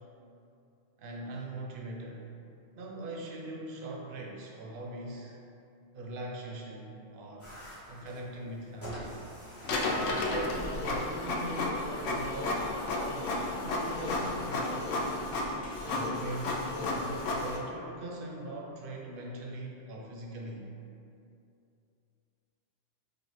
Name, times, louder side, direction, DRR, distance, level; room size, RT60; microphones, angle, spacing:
voice 1, 1.0-2.3 2.8-5.4 5.9-7.5 7.9-9.2 10.0-15.0 15.8-20.6, right 1 dB, 60° right, -1 dB, 0.6 m, -41 dB
sound 1, 7.4-16.6, equal, 15° left, 0.6 m, -50 dB
Printer, 9.6-17.6, left 2 dB, 75° left, 0.9 m, -32 dB
4.8 x 2.4 x 3.1 m, 2.6 s
omnidirectional pair, 1.3 m